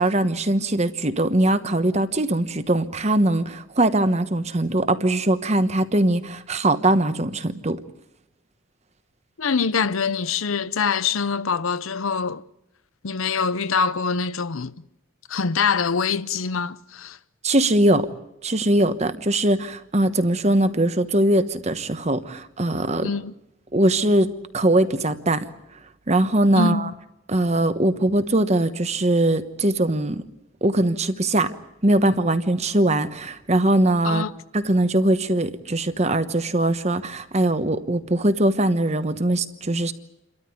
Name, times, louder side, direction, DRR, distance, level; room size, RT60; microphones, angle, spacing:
voice 1, 0.0-7.8 17.4-18.1 18.4-23.1 23.7-25.5 26.1-26.9 27.3-30.2 30.6-31.5 31.8-34.3 34.5-39.9, right 1 dB, 35° right, 1.1 m, -21 dB
voice 2, 9.4-12.4 13.0-14.7 15.3-17.2 23.0-23.3 26.5-26.9 34.0-34.3, left 5 dB, 90° left, 0.8 m, -24 dB
29.0 x 13.5 x 9.4 m
head